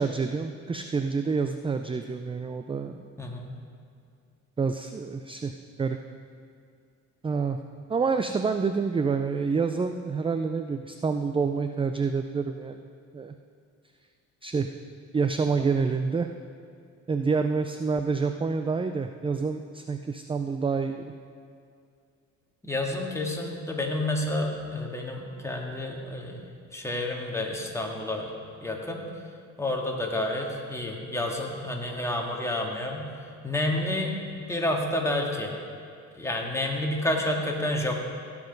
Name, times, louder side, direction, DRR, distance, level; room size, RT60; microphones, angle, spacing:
voice 1, 0.0-3.0 4.6-5.5 5.8-6.0 7.2-7.6 7.9-12.8 13.1-13.3 14.4-14.7 15.1-16.3 17.1-21.1, right 5 dB, 20° right, 8 dB, 0.4 m, -27 dB
voice 2, 3.2-3.5 22.6-26.4 26.7-28.3 28.6-29.0 29.6-33.1 33.4-35.5 36.1-38.0, left 1 dB, 10° left, 0 dB, 1.8 m, -29 dB
17.0 x 6.0 x 5.3 m, 2.4 s
cardioid pair, 90°, 30 cm